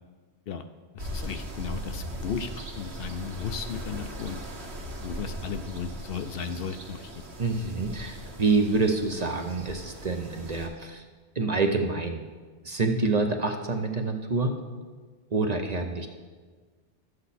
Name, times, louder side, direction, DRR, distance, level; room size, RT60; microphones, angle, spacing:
voice 1, 0.9-4.4 5.0-7.1, left 6 dB, 65° left, 8 dB, 0.7 m, -35 dB
sound 1, 1.0-10.7, right 1 dB, 70° right, 1.5 m, -39 dB
voice 2, 7.4-11.0 11.4-12.2 12.6-14.5 15.3-16.1, right 3 dB, 40° right, 4 dB, 0.7 m, -27 dB
12.0 x 7.8 x 4.1 m, 1.4 s
omnidirectional pair, 1.1 m